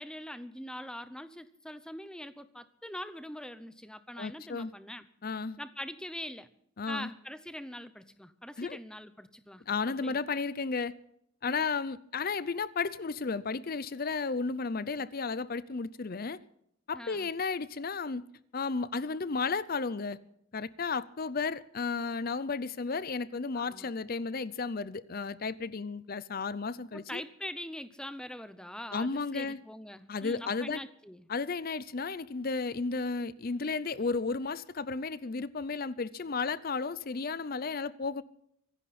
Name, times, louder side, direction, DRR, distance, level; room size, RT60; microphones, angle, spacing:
voice 1, 0.0-5.0 5.6-6.5 6.9-9.6 10.0-10.2 11.5-11.6 16.9-17.3 23.5-23.9 26.9-31.3, left 1 dB, 5° left, 0.7 m, -43 dB
voice 2, 4.2-4.7 5.2-5.6 6.8-7.1 8.6-8.8 9.7-10.9 11.4-16.4 16.9-18.3 18.5-20.2 20.5-27.2 28.9-29.6 30.1-30.8 31.3-38.2, left 4 dB, 45° left, 0.6 m, -33 dB
25.0 x 11.0 x 4.2 m
head